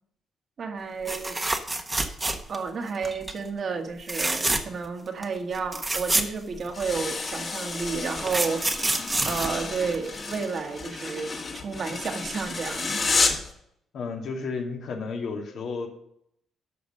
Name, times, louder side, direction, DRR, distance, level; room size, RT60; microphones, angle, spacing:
voice 1, 0.6-1.4 2.5-8.7 9.2-13.0, right 5 dB, 50° right, 4 dB, 1.7 m, -31 dB
sound 1, 1.0-2.7 3.0-3.4 4.0-4.9 5.2-5.3 5.5-7.0 7.8-10.3 12.3-12.4 12.7-12.8, right 2 dB, 20° right, 1.2 m, -28 dB
sound 2, 6.7-13.5, left 4 dB, 40° left, 2.2 m, -31 dB
voice 2, 13.9-15.9, left 4 dB, 70° left, 2 dB, 2.3 m, -32 dB
11.0 x 6.0 x 6.5 m, 0.73 s
cardioid pair, 90°, 0 cm